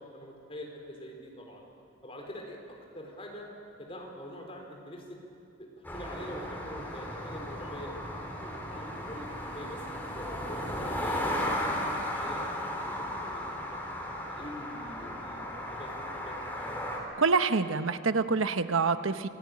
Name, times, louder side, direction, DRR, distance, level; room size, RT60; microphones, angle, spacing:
voice 1, 0.0-1.6 2.0-2.6 2.9-3.5 3.8-5.2 5.6-9.8 10.1-13.4 13.7-13.8 14.3-16.7, equal, 30° left, 1 dB, 4.3 m, -44 dB
sound 1, 5.8-17.0, left 1 dB, 10° left, 3.7 m, -35 dB
voice 2, 17.2-19.3, right 4 dB, 85° right, 10 dB, 1.0 m, -26 dB
27.0 x 18.5 x 9.8 m, 2.9 s
head